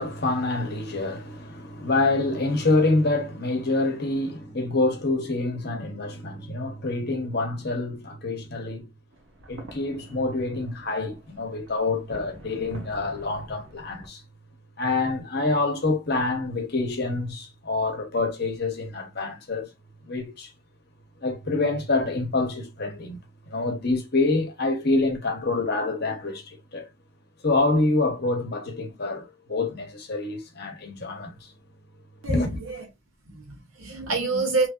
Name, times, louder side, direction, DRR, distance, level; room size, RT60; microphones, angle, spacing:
voice 1, 0.0-8.9 9.5-14.2 14.8-19.7 20.1-20.5 21.2-23.2 23.5-26.9 27.4-31.5 32.3-32.5, left 2 dB, 50° left, 0.9 m, -26 dB
sound 1, 9.1-14.1, right 1 dB, 70° right, 0.9 m, -46 dB
voice 2, 32.2-32.8 33.3-34.7, right 3 dB, 85° right, 1.2 m, -27 dB
3.1 x 2.7 x 2.3 m
head